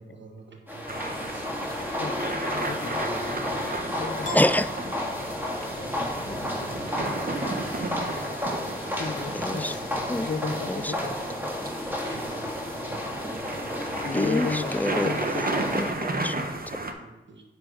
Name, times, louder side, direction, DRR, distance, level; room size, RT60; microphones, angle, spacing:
voice 1, 0.0-1.8 2.7-3.8 4.1-4.3 5.7-6.0 6.6-7.2 7.9-8.1 9.1-9.7 10.1-10.2 10.4-10.5 10.9-11.0 12.0-12.4 12.7-14.1 15.3-15.7 17.0-17.4, right 3 dB, 70° right, 2 dB, 1.4 m, -46 dB
sound 1, 0.7-15.9, left 1 dB, 10° right, 1.9 m, -32 dB
sound 2, 0.9-16.9, right 2 dB, 50° right, 1.0 m, -34 dB
voice 2, 2.0-4.3 5.3-5.4 5.7-5.9 9.0-11.5 14.0-15.7, left 4 dB, 65° left, 9 dB, 0.7 m, -34 dB
Piano, 4.2-5.8, left 2 dB, 40° left, 1.7 m, -38 dB
voice 3, 4.3-4.7 6.2-6.5 9.0-9.1 9.3-9.8 10.1-10.3 10.7-11.0 14.1-16.4, left 1 dB, 10° left, 13 dB, 0.3 m, -27 dB
9.5 x 5.0 x 3.9 m, 1.1 s
cardioid pair, 45°, 20 cm